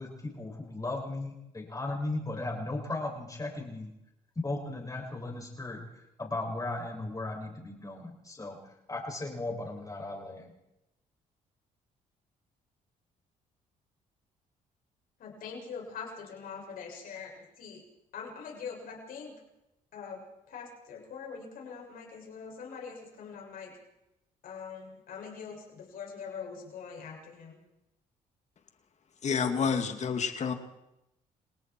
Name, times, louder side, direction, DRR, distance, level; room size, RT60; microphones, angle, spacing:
voice 1, 0.0-3.9 4.4-5.8 6.2-10.5, left 2 dB, 25° left, 0 dB, 7.4 m, -36 dB
voice 2, 15.2-17.8 18.1-19.4 19.9-23.7 24.4-27.6, left 6 dB, 70° left, 0 dB, 7.0 m, -43 dB
voice 3, 29.2-30.5, left 6 dB, 50° left, 7 dB, 2.5 m, -29 dB
29.5 x 19.0 x 4.7 m, 0.89 s
cardioid pair, 85°, 15 cm